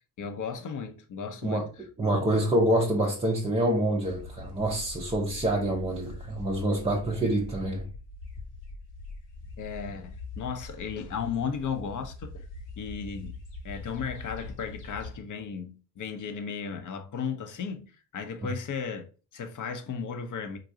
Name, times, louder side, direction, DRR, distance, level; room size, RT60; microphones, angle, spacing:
voice 1, 0.2-1.7 2.1-2.3 9.6-12.5 12.8-13.4 13.6-20.6, left 6 dB, 40° left, 0.6 m, -35 dB
voice 2, 2.0-7.9, right 1 dB, 15° right, 0.5 m, -26 dB
sound 1, 4.0-15.2, left 3 dB, 80° left, 0.9 m, -43 dB
3.7 x 2.3 x 2.7 m
hypercardioid pair, 50°, 50 cm